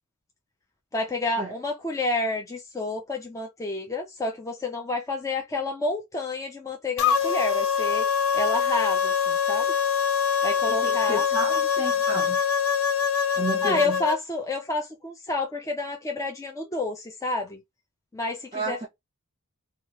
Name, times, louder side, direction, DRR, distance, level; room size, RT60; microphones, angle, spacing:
voice 1, 0.9-8.1 8.3-9.7 10.4-11.2 13.6-17.6 18.1-18.9, left 2 dB, 15° left, 0.5 m, -29 dB
sound 1, 7.0-14.2, left 7 dB, 65° left, 0.5 m, -24 dB
voice 2, 10.7-12.4 13.4-14.0 18.5-18.9, right 2 dB, 25° right, 0.7 m, -32 dB
3.1 x 2.3 x 2.7 m
head